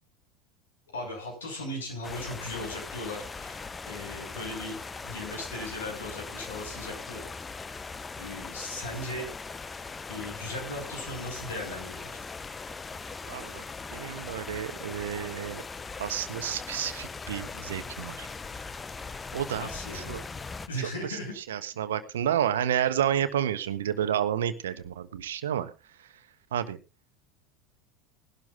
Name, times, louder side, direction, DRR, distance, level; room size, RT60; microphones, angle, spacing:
voice 1, 0.9-4.8 5.0-7.3 8.2-9.7 10.1-12.2 19.6-20.1 20.7-21.6, left 1 dB, 75° left, 1 dB, 6.5 m, -38 dB
sound 1, 2.0-20.7, left 4 dB, 20° left, 0.7 m, -40 dB
voice 2, 13.3-13.6 13.9-15.6 16.0-18.3 19.3-19.7 19.9-20.2 21.5-25.7 26.5-26.8, right 10 dB, 70° right, 13 dB, 1.0 m, -30 dB
20.5 x 12.0 x 2.5 m, 0.29 s
figure-of-eight pair, 75°, 0 cm